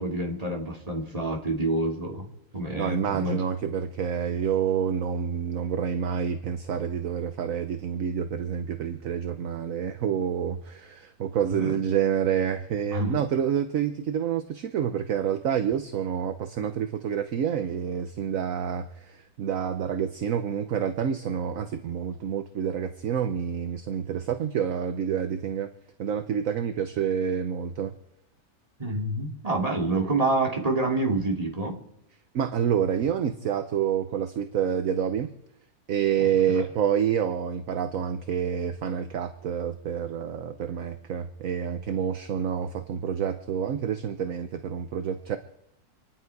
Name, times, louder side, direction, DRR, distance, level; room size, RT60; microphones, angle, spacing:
voice 1, 0.0-2.3 2.5-3.4 11.5-11.8 12.9-13.2 28.8-31.8 36.2-36.3, right 2 dB, 20° right, 1 dB, 2.6 m, -27 dB
voice 2, 2.8-25.7 26.0-27.9 32.3-35.3 35.9-45.4, right 8 dB, 60° right, 9 dB, 1.2 m, -28 dB
26.5 x 11.0 x 4.7 m, 0.83 s
omnidirectional pair, 1.7 m